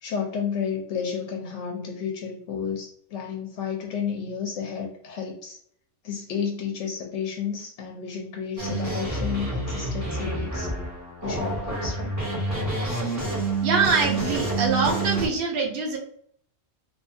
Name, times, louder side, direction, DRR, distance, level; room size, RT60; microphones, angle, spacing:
voice 1, 0.0-5.6 6.0-10.7 11.2-12.2, left 7 dB, 70° left, 1 dB, 0.8 m, -31 dB
sound 1, 8.6-15.3, right 2 dB, 20° right, 0.6 m, -28 dB
voice 2, 13.6-16.0, right 4 dB, 60° right, 0 dB, 0.7 m, -24 dB
2.6 x 2.3 x 2.5 m, 0.65 s
omnidirectional pair, 1.3 m